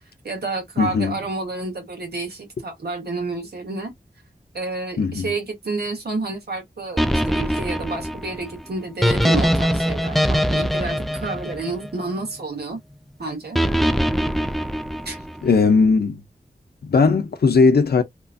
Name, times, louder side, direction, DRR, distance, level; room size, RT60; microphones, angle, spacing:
voice 1, 0.2-3.9 4.5-12.8 13.2-13.6 15.0-15.2, right 3 dB, 75° right, 1.2 m, -30 dB
voice 2, 0.8-1.2 5.0-5.3 15.4-16.2 16.8-18.0, left 4 dB, 75° left, 0.5 m, -17 dB
sound 1, 7.0-12.3 13.5-15.5, equal, ahead, 0.4 m, -22 dB
2.9 x 2.4 x 2.4 m
wide cardioid pair, 60°, 16 cm